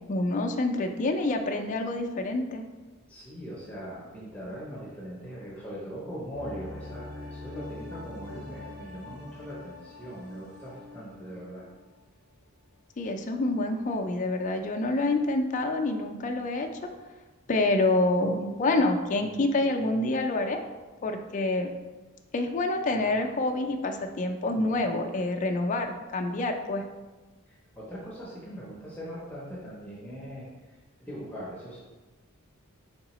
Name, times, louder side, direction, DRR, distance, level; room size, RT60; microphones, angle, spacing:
voice 1, 0.1-2.6 13.0-16.7 17.5-20.6 21.0-21.7 22.3-26.8, left 2 dB, 35° left, 4 dB, 0.3 m, -27 dB
voice 2, 3.1-11.6 27.5-31.8, equal, 5° left, -6 dB, 0.7 m, -41 dB
sound 1, 6.3-12.0 12.3-12.4, left 2 dB, 40° right, 1.3 m, -44 dB
4.7 x 3.6 x 3.0 m, 1.2 s
head